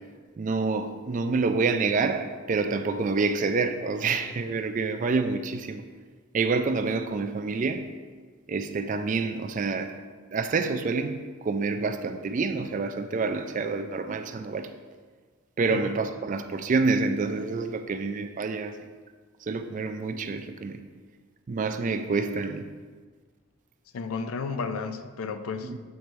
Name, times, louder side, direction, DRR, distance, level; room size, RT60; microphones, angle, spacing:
voice 1, 0.4-5.9 6.3-7.9 8.5-9.9 10.3-14.7 15.6-18.8 19.4-20.8 21.5-22.7 25.6-25.8, right 4 dB, 35° right, 8 dB, 0.3 m, -27 dB
voice 2, 23.9-25.7, left 4 dB, 75° left, 9 dB, 0.4 m, -33 dB
8.2 x 3.1 x 4.5 m, 1.5 s
head